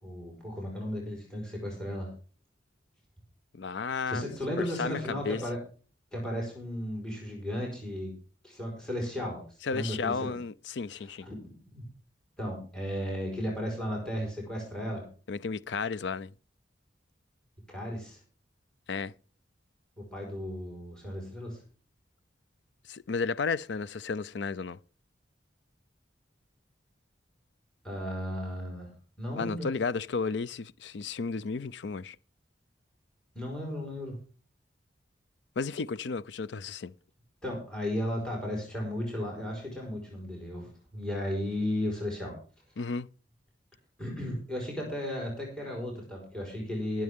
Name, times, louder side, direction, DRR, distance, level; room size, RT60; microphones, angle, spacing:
voice 1, 0.0-2.1 4.1-5.6 6.1-8.1 8.4-9.4 9.7-10.3 11.2-11.4 11.7-11.8 12.4-15.0 17.7-18.2 20.0-21.6 27.8-28.9 29.2-29.7 33.3-34.2 37.4-42.4 44.0-47.0, equal, 5° left, 4.6 m, -35 dB
voice 2, 3.5-4.3 4.8-5.4 9.6-11.3 15.3-16.3 18.9-19.1 22.9-24.8 29.3-32.2 35.6-36.9 42.8-43.1, left 4 dB, 70° left, 0.5 m, -33 dB
22.0 x 7.4 x 3.6 m
head